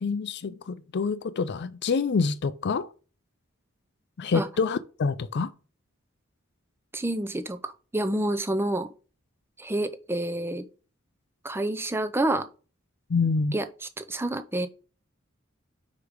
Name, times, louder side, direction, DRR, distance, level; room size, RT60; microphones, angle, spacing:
voice 1, 0.0-2.9 4.2-5.5 13.1-13.6, left 4 dB, 55° left, 0.4 m, -27 dB
voice 2, 6.9-8.9 9.6-10.7 11.4-12.4 13.5-13.7 14.0-14.7, right 1 dB, 10° right, 0.5 m, -28 dB
4.9 x 4.8 x 5.0 m
head